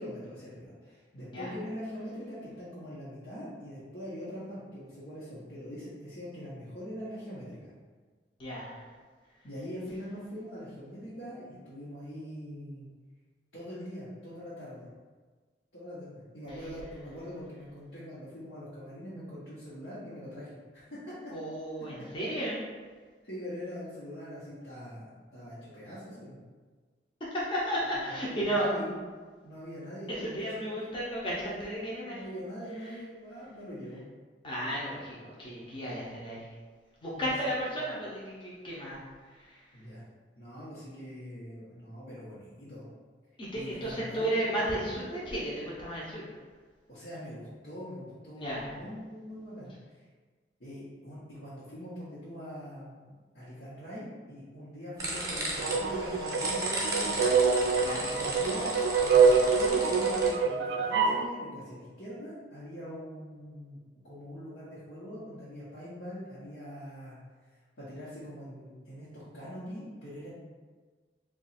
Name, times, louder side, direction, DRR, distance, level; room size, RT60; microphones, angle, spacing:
voice 1, 0.0-7.7 9.4-12.9 13.5-14.9 15.7-21.3 23.2-25.1 25.3-26.4 28.1-29.0 29.4-31.1 31.4-34.0 37.2-37.5 39.7-40.0 40.4-42.9 43.5-44.2 44.8-45.2 46.9-50.0 50.6-57.3 58.1-58.7 59.0-63.8 64.0-67.2 67.8-70.3, equal, 85° left, -12 dB, 1.0 m, -43 dB
voice 2, 8.4-8.9 16.5-16.6 21.3-22.6 27.3-28.7 30.2-32.2 34.4-36.5 37.0-39.0 39.3-39.6 43.4-46.3 48.4-48.7 57.8-58.1, right 1 dB, 30° left, -6 dB, 0.6 m, -34 dB
sound 1, 55.0-60.3, right 1 dB, 20° right, 0.7 m, -35 dB
sound 2, 55.6-61.3, right 5 dB, 80° right, 0.3 m, -25 dB
2.8 x 2.3 x 4.1 m, 1.4 s
head